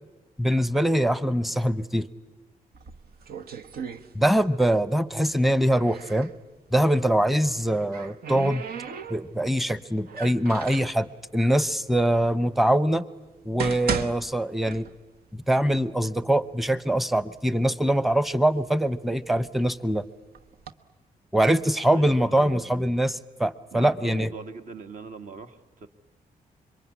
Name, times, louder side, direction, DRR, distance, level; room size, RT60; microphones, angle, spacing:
voice 1, 0.4-2.1 4.1-6.3 6.7-8.6 9.1-11.1 11.3-13.0 13.5-14.9 15.3-20.0 21.3-24.3, right 1 dB, ahead, 16 dB, 0.9 m, -23 dB
sound 1, 2.7-4.6 4.9-6.3 7.5-9.5 10.1-11.0 11.8-11.9 12.5-12.6 13.3-15.2 15.6-15.7 16.4-16.5 16.8-17.5 18.0-19.7 20.3-20.7, right 6 dB, 75° right, 1.2 m, -36 dB
voice 2, 21.9-22.7 23.7-25.9, right 4 dB, 55° right, 7 dB, 1.9 m, -41 dB
26.0 x 23.0 x 9.7 m, 1.1 s
cardioid pair, 95°, 15 cm